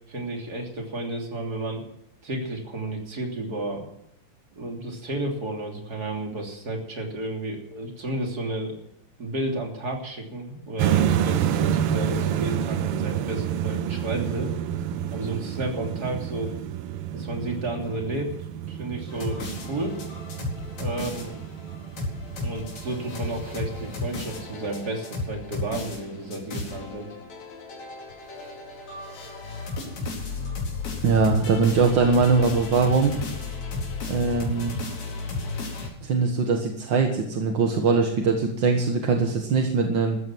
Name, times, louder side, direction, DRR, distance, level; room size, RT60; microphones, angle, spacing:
voice 1, 0.1-1.8 2.2-3.8 4.5-8.8 9.2-14.5 15.1-16.5 17.1-18.3 18.7-20.0 20.8-21.4 22.4-27.1, right 2 dB, 30° right, 1 dB, 3.5 m, -32 dB
sound 1, 10.8-24.8, right 10 dB, 80° right, 1.3 m, -29 dB
sound 2, 19.1-35.9, left 3 dB, 60° left, 5.7 m, -34 dB
voice 2, 31.0-33.2 34.1-34.8 36.0-40.2, right 4 dB, 45° right, 3 dB, 1.7 m, -21 dB
15.0 x 14.0 x 6.2 m, 0.76 s
omnidirectional pair, 3.6 m